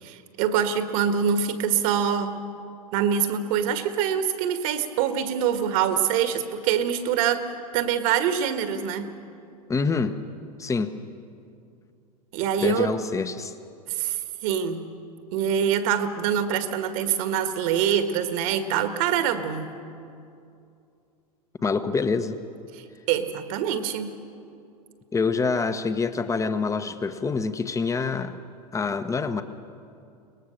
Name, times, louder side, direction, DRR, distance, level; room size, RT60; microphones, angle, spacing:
voice 1, 0.0-2.4 2.9-7.5 7.7-9.1 12.3-12.9 13.9-14.9 15.3-19.7 22.7-24.1, right 8 dB, 55° right, 9 dB, 1.7 m, -25 dB
voice 2, 9.7-10.2 10.6-11.0 12.6-13.5 21.6-22.4 25.1-28.4 28.7-29.4, left 4 dB, 15° left, 11 dB, 1.1 m, -26 dB
23.5 x 19.5 x 6.5 m, 2.6 s
hypercardioid pair, 95°, 21 cm